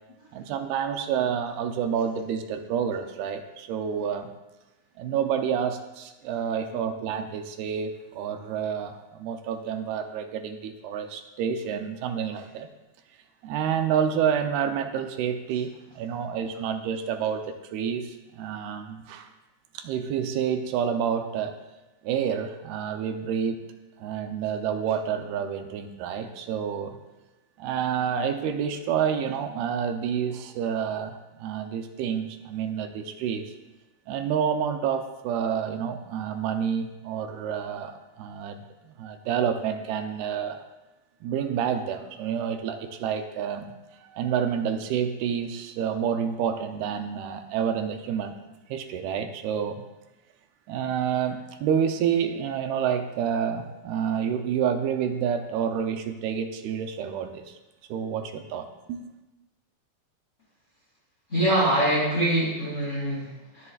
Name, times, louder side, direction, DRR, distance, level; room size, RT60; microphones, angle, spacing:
voice 1, 0.3-4.3 5.0-12.7 13.4-19.3 19.7-21.6 22.0-23.6 24.0-27.0 27.6-33.5 34.1-38.6 38.8-40.6 41.2-43.7 44.0-48.4 48.7-49.8 50.7-57.6 57.9-59.1, right 8 dB, 80° right, 6 dB, 2.7 m, -29 dB
voice 2, 61.3-63.7, right 1 dB, 20° left, -4 dB, 2.5 m, -24 dB
21.0 x 11.0 x 2.5 m, 1.0 s
omnidirectional pair, 4.5 m